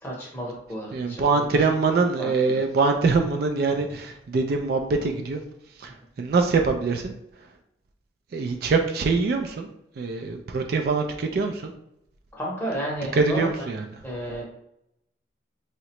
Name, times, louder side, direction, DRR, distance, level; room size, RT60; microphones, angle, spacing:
voice 1, 0.0-1.6 2.2-2.6 3.8-3.9 12.3-13.7 14.0-14.4, right 1 dB, 10° left, -3 dB, 0.8 m, -33 dB
voice 2, 0.9-5.4 5.8-7.1 8.3-9.7 10.0-11.7 13.1-13.9, right 4 dB, 55° right, 5 dB, 0.3 m, -24 dB
3.6 x 2.1 x 2.9 m, 0.80 s
head